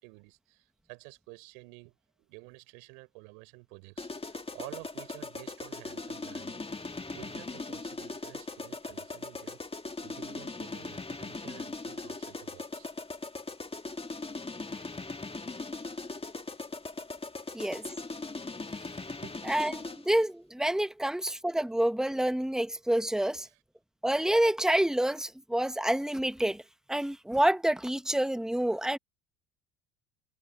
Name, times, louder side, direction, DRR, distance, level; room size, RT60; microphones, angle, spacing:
voice 1, 0.0-6.6 7.1-9.6 10.0-12.9 17.5-17.7 19.2-19.5 23.4-23.6, right 32 dB, 70° right, 4.5 m, -51 dB
sound 1, 4.0-20.2, left 3 dB, 15° left, 2.1 m, -40 dB
voice 2, 17.5-17.9 19.4-23.5 24.0-26.6 26.9-29.0, right 1 dB, ahead, 1.8 m, -28 dB
hypercardioid pair, 65°, 40 cm